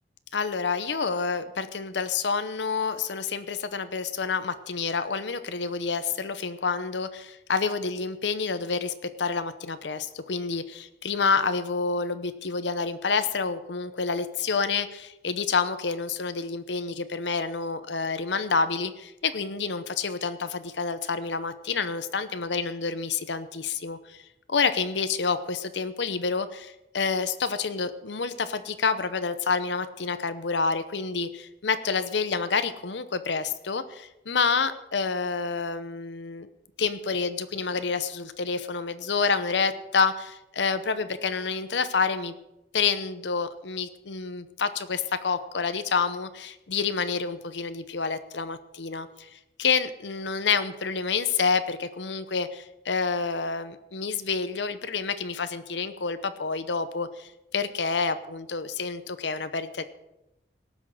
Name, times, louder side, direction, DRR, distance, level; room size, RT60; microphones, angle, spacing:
voice 1, 0.3-24.2 24.5-36.5 36.8-42.3 42.7-59.8, left 5 dB, 85° left, 11 dB, 0.8 m, -28 dB
18.0 x 6.4 x 7.6 m, 0.90 s
head